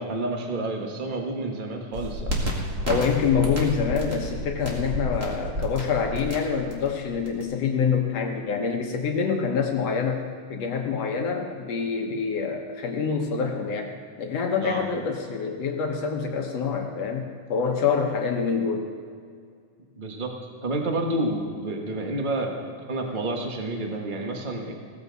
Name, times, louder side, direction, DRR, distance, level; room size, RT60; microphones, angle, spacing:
voice 1, 0.0-2.4 14.6-14.8 20.0-20.3 20.6-22.5 22.9-24.7, right 2 dB, 50° right, 2 dB, 0.5 m, -29 dB
sound 1, 1.9-7.4, equal, 25° right, 1.9 m, -30 dB
voice 2, 2.8-10.2 10.5-18.9, left 6 dB, 65° left, 2 dB, 2.0 m, -26 dB
17.0 x 14.5 x 4.0 m, 2.2 s
omnidirectional pair, 3.5 m